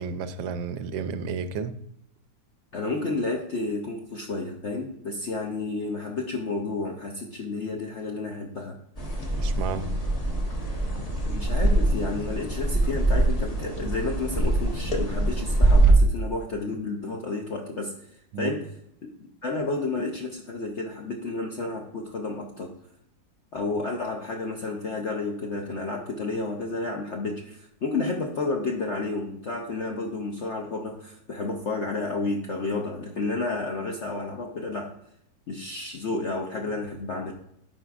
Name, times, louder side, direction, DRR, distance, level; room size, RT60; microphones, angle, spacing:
voice 1, 0.0-1.7 9.4-9.9 18.3-18.5, right 5 dB, 90° right, 11 dB, 1.4 m, -31 dB
voice 2, 2.7-8.8 11.2-18.1 18.4-18.6 19.0-19.1 19.4-22.7 23.5-34.9 35.5-37.3, left 3 dB, 65° left, 1 dB, 0.7 m, -31 dB
sound 1, 9.0-15.9, right 2 dB, 25° left, 0.9 m, -24 dB
11.0 x 4.4 x 2.4 m, 0.75 s
omnidirectional pair, 2.0 m